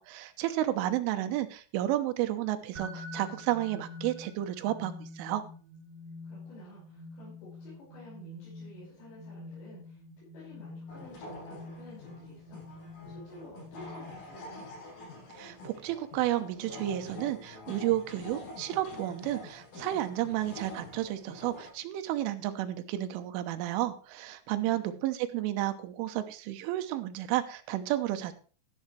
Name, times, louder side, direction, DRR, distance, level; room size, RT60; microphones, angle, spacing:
voice 1, 0.0-5.4 15.4-28.3, right 14 dB, 85° right, 8 dB, 3.3 m, -32 dB
sound 1, 2.8-14.5, left 2 dB, 60° right, 5.2 m, -47 dB
voice 2, 6.2-14.7 24.5-25.0, left 1 dB, 60° left, -7 dB, 7.5 m, -51 dB
sound 2, 10.9-21.7, left 2 dB, 85° left, 8.4 m, -46 dB
13.5 x 10.5 x 3.3 m, 0.39 s
omnidirectional pair, 5.9 m